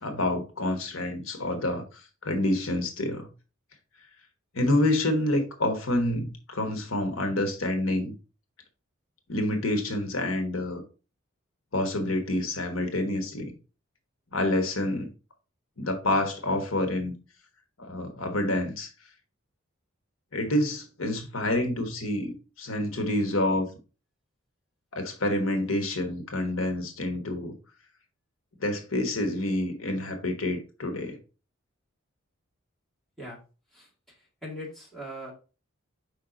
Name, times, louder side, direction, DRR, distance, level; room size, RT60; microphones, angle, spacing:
voice 1, 0.0-3.3 4.5-8.1 9.3-10.8 11.7-13.5 14.3-15.1 15.8-17.1 17.8-18.9 20.3-23.7 24.9-27.6 28.6-31.2, left 1 dB, 75° left, 1.2 m, -28 dB
voice 2, 33.7-35.3, equal, ahead, 2.3 m, -41 dB
5.6 x 4.8 x 3.8 m
head